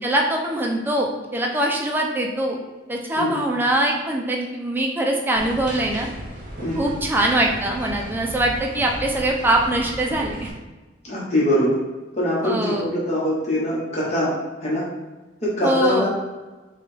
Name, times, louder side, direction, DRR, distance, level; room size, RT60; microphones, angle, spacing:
voice 1, 0.0-2.6 2.9-6.1 6.8-10.5 12.4-12.9 15.6-16.1, right 1 dB, 10° right, 0 dB, 0.4 m, -22 dB
sound 1, 5.4-10.5, right 1 dB, 45° right, 0.8 m, -35 dB
voice 2, 6.6-7.0 11.0-11.8 12.1-14.3 14.6-14.8 15.4-16.1, left 1 dB, 35° left, -6 dB, 1.0 m, -23 dB
4.7 x 2.4 x 3.2 m, 1.2 s
head